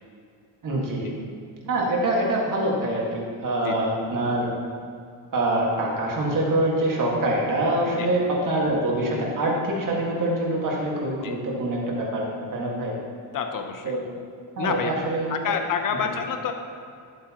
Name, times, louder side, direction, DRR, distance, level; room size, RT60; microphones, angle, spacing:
voice 1, 0.6-1.1 1.6-4.6 5.3-13.0 13.8-14.0 14.6-15.5 16.0-16.1, right 1 dB, 40° right, -3 dB, 1.9 m, -25 dB
voice 2, 13.3-13.9 14.6-14.9 15.3-16.5, left 6 dB, 40° left, 6 dB, 0.8 m, -28 dB
11.0 x 8.2 x 3.0 m, 2.3 s
cardioid pair, 155°, 48 cm